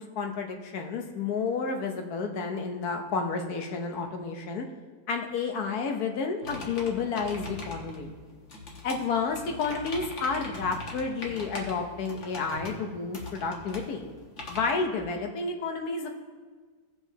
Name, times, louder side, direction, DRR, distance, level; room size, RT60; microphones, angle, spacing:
voice 1, 0.0-4.7 5.1-8.2 8.8-14.1 14.5-16.1, left 4 dB, 85° left, 3 dB, 1.4 m, -31 dB
sound 1, 6.4-14.7, left 2 dB, 55° left, 1.6 m, -41 dB
17.0 x 6.0 x 2.8 m, 1.5 s
omnidirectional pair, 1.6 m